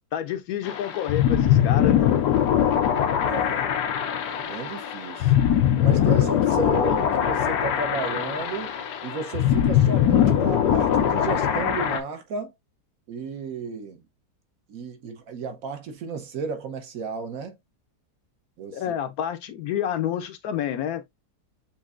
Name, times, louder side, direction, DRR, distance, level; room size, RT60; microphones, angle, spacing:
voice 1, 0.1-2.1 18.7-21.1, left 10 dB, 70° left, 1.0 m, -29 dB
sound 1, 0.6-12.0, left 10 dB, 90° left, 1.3 m, -22 dB
voice 2, 3.3-3.7 4.3-5.3 5.8-8.7 9.0-12.5 13.1-14.0 14.7-17.5 18.6-18.8, right 5 dB, 65° right, 1.2 m, -33 dB
7.1 x 2.7 x 2.4 m
omnidirectional pair, 1.7 m